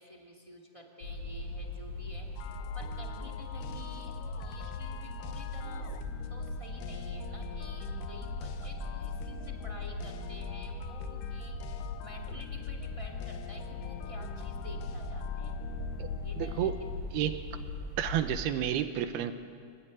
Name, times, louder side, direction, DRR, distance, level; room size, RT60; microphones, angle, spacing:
voice 1, 0.0-11.6 12.0-15.6 16.2-16.7, equal, 10° right, 2 dB, 1.6 m, -51 dB
sound 1, 1.0-18.4, left 2 dB, 55° left, 5.0 m, -39 dB
sound 2, 2.4-17.0, left 10 dB, 70° left, 2.2 m, -45 dB
voice 2, 16.4-16.8 17.1-17.5 18.0-19.3, right 11 dB, 75° right, 9 dB, 2.9 m, -30 dB
25.5 x 18.0 x 9.8 m, 2.2 s
omnidirectional pair, 4.7 m